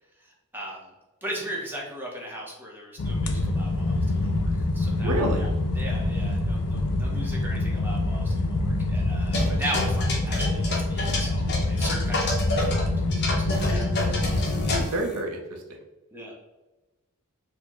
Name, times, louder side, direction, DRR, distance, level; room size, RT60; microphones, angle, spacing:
voice 1, 0.2-0.9 1.2-12.2 13.1-14.4 16.1-16.3, right 1 dB, 10° right, -3 dB, 0.7 m, -38 dB
sound 1, 3.0-14.8, left 2 dB, 80° left, 0.5 m, -26 dB
voice 2, 5.0-5.4 14.7-15.6, right 1 dB, 80° right, 2 dB, 0.6 m, -28 dB
sound 2, 9.3-12.8 13.1-15.2, left 2 dB, 50° left, 0.8 m, -29 dB
4.1 x 2.1 x 3.0 m, 1.1 s
head